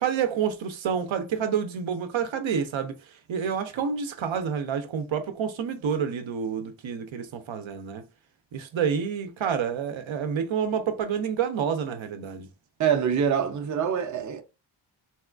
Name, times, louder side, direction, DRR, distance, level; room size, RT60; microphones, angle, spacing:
voice 1, 0.0-2.9 3.3-8.0 8.5-12.5, right 7 dB, 80° right, 0.6 m, -28 dB
voice 2, 12.8-14.4, right 8 dB, 40° right, 0.5 m, -25 dB
4.1 x 2.3 x 2.4 m
wide cardioid pair, 155°, 46 cm